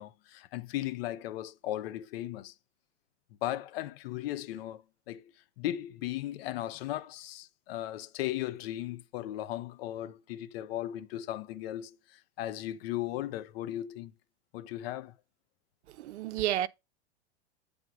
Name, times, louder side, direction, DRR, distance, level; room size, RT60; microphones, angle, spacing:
voice 1, 0.0-2.5 3.4-14.1 14.5-15.1, left 13 dB, 60° left, 0.7 m, -37 dB
voice 2, 16.0-16.7, right 12 dB, 85° right, 0.5 m, -30 dB
7.9 x 3.6 x 4.8 m
hypercardioid pair, 115°, 33 cm